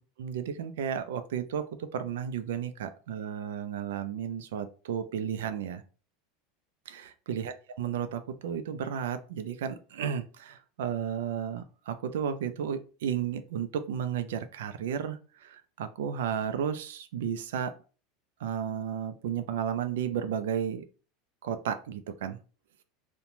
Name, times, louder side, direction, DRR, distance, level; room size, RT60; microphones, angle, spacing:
voice 1, 0.2-5.8 6.9-17.7 18.4-20.8 21.4-22.4, right 8 dB, 85° right, 10 dB, 0.3 m, -33 dB
2.9 x 2.1 x 2.6 m, 0.36 s
supercardioid pair, 115°, 0 cm